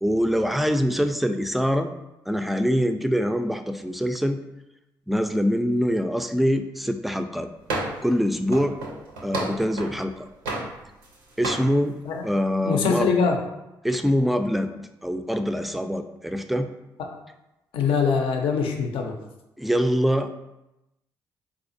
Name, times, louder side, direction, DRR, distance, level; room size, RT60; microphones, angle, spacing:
voice 1, 0.0-1.9 2.3-4.4 5.1-7.5 8.0-8.8 9.2-10.3 11.4-12.0 12.2-13.1 13.8-14.7 15.0-16.7 19.6-20.3, equal, ahead, 8 dB, 0.3 m, -24 dB
sound 1, 7.7-8.1 8.5-10.0 10.4-11.1 11.4-11.7, right 2 dB, 85° right, 0.6 m, -31 dB
voice 2, 12.6-13.4 17.0-17.1 17.7-19.2, left 5 dB, 70° left, 3 dB, 0.5 m, -23 dB
4.1 x 2.4 x 2.6 m, 0.93 s
hypercardioid pair, 45°, 10 cm